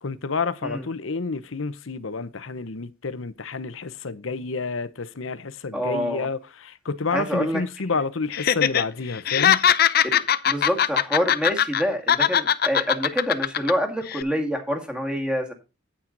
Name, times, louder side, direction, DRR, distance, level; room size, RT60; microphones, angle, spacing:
voice 1, 0.0-9.7, left 4 dB, 85° left, 0.8 m, -29 dB
voice 2, 5.7-6.3 7.1-7.6 10.0-10.2 10.5-15.5, equal, 5° right, 1.8 m, -26 dB
Laughter, 8.3-8.8 9.1-11.8 12.1-13.7 14.1-14.2, left 9 dB, 50° left, 0.5 m, -20 dB
9.1 x 8.7 x 3.9 m
head